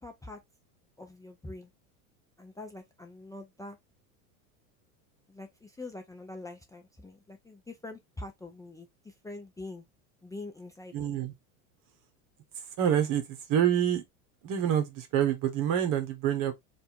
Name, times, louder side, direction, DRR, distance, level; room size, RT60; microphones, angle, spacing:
voice 1, 0.0-0.4 1.0-1.7 2.4-3.8 5.3-9.8 10.2-11.1, left 2 dB, 10° left, 0.6 m, -44 dB
voice 2, 10.9-11.3 12.8-14.0 14.4-16.5, right 9 dB, 50° right, 1.3 m, -27 dB
3.4 x 2.7 x 4.5 m
supercardioid pair, 110°, 43 cm